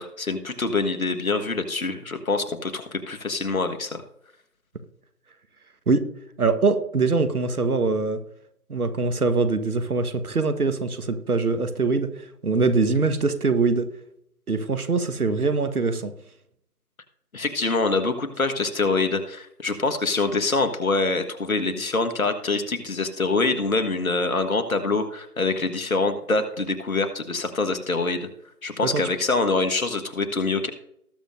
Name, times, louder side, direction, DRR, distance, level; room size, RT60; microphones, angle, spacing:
voice 1, 0.0-4.0 17.3-28.3 28.6-30.7, left 3 dB, 60° left, 7 dB, 1.5 m, -25 dB
voice 2, 6.4-8.2 8.7-12.1 12.4-13.9 14.5-16.1 28.8-29.1, right 4 dB, 65° right, 10 dB, 1.4 m, -23 dB
19.0 x 7.1 x 2.6 m, 0.73 s
figure-of-eight pair, 160°, 47 cm